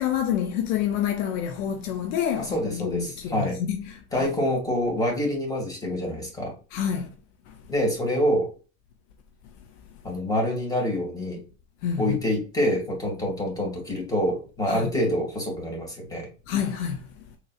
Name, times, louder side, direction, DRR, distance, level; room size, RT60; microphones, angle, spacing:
voice 1, 0.0-4.3 6.7-7.1 7.5-7.6 11.8-12.2 14.7-14.9 16.5-17.1, left 9 dB, 65° left, 0.6 m, -28 dB
voice 2, 2.4-3.6 4.1-6.5 7.7-8.5 10.0-11.4 12.0-16.3, equal, 10° left, 2.0 m, -26 dB
3.8 x 3.0 x 2.4 m
hypercardioid pair, 85°, 40 cm